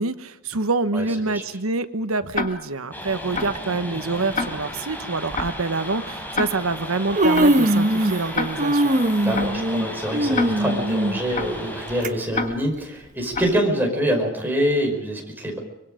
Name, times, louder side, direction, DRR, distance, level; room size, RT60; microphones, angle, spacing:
voice 1, 0.0-8.9, right 3 dB, 90° right, 11 dB, 1.2 m, -26 dB
voice 2, 0.9-1.4 9.2-15.6, equal, 10° right, 1 dB, 5.3 m, -25 dB
Tick-tock, 2.3-2.8 3.3-3.7 4.3-4.8 5.3-5.7 6.3-6.8 7.3-7.7 8.3-8.8 9.3-9.7 10.3-10.8 11.3-11.7 12.3-12.8 13.3-13.7, left 3 dB, 40° left, 1.8 m, -29 dB
sound 1, 2.9-12.1, equal, 10° left, 4.3 m, -35 dB
Human voice, 3.4-3.6 4.6-4.7 5.3-5.5 6.5-6.6 6.9-8.3 8.6-12.1 12.5-12.6 13.5-13.6, right 1 dB, 35° right, 1.3 m, -21 dB
25.0 x 22.5 x 5.1 m, 0.94 s
head